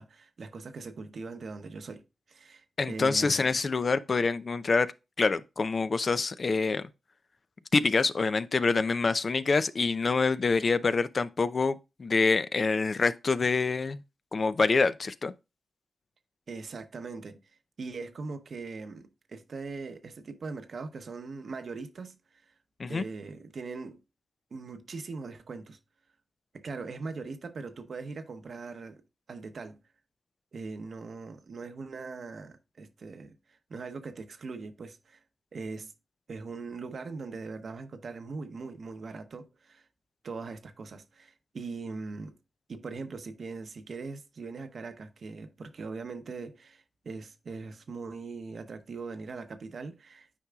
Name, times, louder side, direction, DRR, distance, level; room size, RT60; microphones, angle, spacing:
voice 1, 0.0-3.5 16.5-22.4 22.9-24.0 24.5-25.8 26.5-29.0 29.3-29.8 30.5-35.2 35.5-35.9 36.3-39.9 40.2-42.4 42.7-50.3, right 4 dB, 70° right, 0.8 m, -41 dB
voice 2, 2.8-4.9 5.2-6.9 7.7-14.0 14.3-15.3 22.8-23.0, left 4 dB, 55° left, 0.5 m, -26 dB
8.5 x 4.7 x 2.3 m
supercardioid pair, 45°, 0 cm